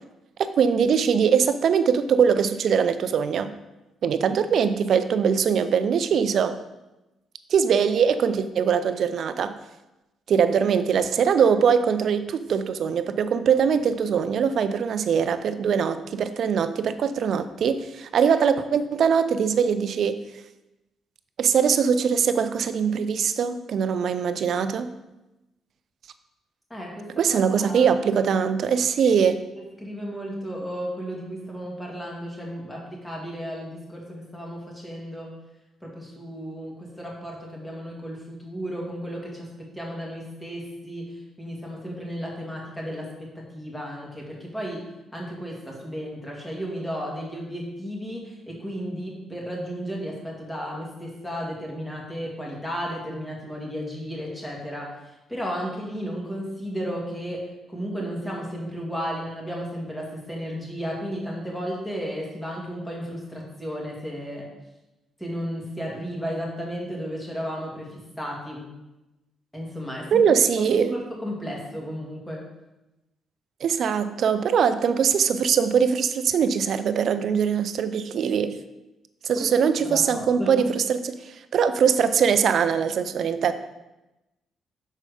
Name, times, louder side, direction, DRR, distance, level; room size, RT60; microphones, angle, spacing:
voice 1, 0.4-3.5 4.0-6.6 7.5-9.5 10.3-20.2 21.4-24.9 27.2-29.4 70.1-71.0 73.6-78.6 79.2-83.5, right 7 dB, 65° right, 11 dB, 0.4 m, -22 dB
voice 2, 26.7-27.9 29.8-35.3 35.8-64.5 65.2-68.7 69.5-70.3 70.6-72.5 79.3-80.7, equal, 10° left, -2 dB, 2.0 m, -34 dB
6.5 x 4.2 x 4.9 m, 0.99 s
cardioid pair, 90°, 0 cm